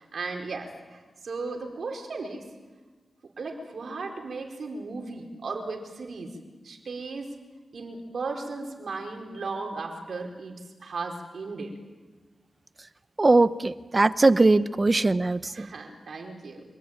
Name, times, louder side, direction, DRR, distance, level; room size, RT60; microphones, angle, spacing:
voice 1, 0.0-2.5 3.2-6.3 6.6-7.3 7.7-11.7 15.5-16.6, right 3 dB, 70° right, 2 dB, 5.0 m, -36 dB
voice 2, 13.2-15.4, right 2 dB, 35° right, 14 dB, 0.9 m, -20 dB
27.5 x 20.0 x 9.1 m, 1.3 s
cardioid pair, 50°, 0 cm